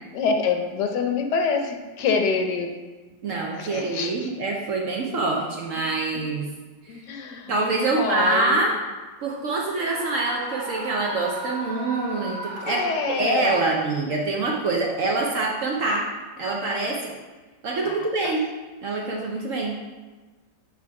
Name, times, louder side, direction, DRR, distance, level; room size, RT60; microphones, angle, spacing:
voice 1, 0.1-2.7 3.5-4.3 6.9-7.5 7.8-8.6 12.6-13.8 17.8-18.1, left 5 dB, 70° left, 4 dB, 1.3 m, -26 dB
voice 2, 3.2-6.5 6.8-7.0 7.5-8.7 9.2-16.0 16.4-17.1 17.6-18.4 18.8-19.7, right 3 dB, 60° right, -1 dB, 0.9 m, -25 dB
Screaming, 9.8-13.4, right 1 dB, 80° right, 1.9 m, -35 dB
8.2 x 3.0 x 4.7 m, 1.3 s
omnidirectional pair, 2.0 m